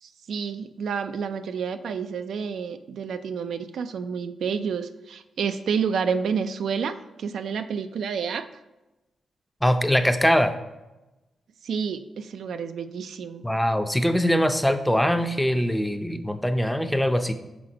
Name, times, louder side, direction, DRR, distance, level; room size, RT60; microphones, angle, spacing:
voice 1, 0.0-8.5 11.6-13.4, right 6 dB, 80° right, 9 dB, 0.3 m, -29 dB
voice 2, 9.6-10.5 13.4-17.3, equal, 5° left, 8 dB, 0.5 m, -22 dB
5.9 x 3.8 x 4.9 m, 1.0 s
cardioid pair, 70°, 0 cm